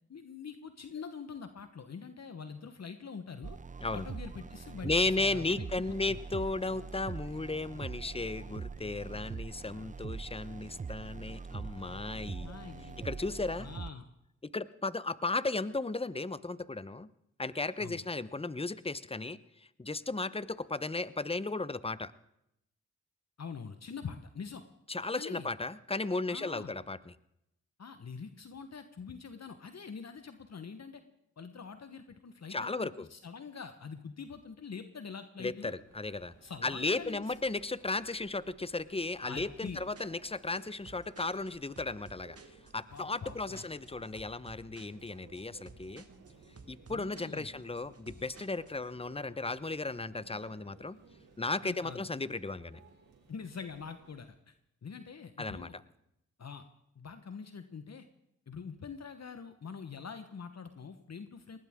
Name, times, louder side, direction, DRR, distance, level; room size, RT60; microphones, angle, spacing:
voice 1, 0.1-3.6 3.9-4.9 5.2-6.2 12.4-13.0 13.6-14.0 17.8-18.0 23.4-24.6 25.1-25.5 26.3-26.7 27.8-31.0 31.4-35.7 36.4-37.3 39.2-39.8 42.9-43.7 46.9-47.5 51.6-52.0 53.3-54.5 54.8-55.8 56.4-56.6 56.9-58.1 58.5-61.6, left 6 dB, 55° left, 9 dB, 1.2 m, -44 dB
sound 1, 3.4-13.9, right 5 dB, 25° right, 0.5 m, -43 dB
voice 2, 4.8-12.5 13.0-13.7 14.5-17.1 17.4-19.4 19.8-22.1 24.9-27.1 32.5-33.1 35.4-36.3 36.6-42.4 42.7-46.0 46.7-51.0 51.4-52.8 55.4-55.7, left 3 dB, 20° left, 16 dB, 1.0 m, -35 dB
Conversation / Chatter / Crowd, 35.8-54.3, right 4 dB, 90° right, 3.1 m, -59 dB
sound 2, 39.4-48.9, right 3 dB, 50° right, 2.0 m, -55 dB
20.0 x 18.5 x 3.7 m, 0.79 s
supercardioid pair, 40°, 31 cm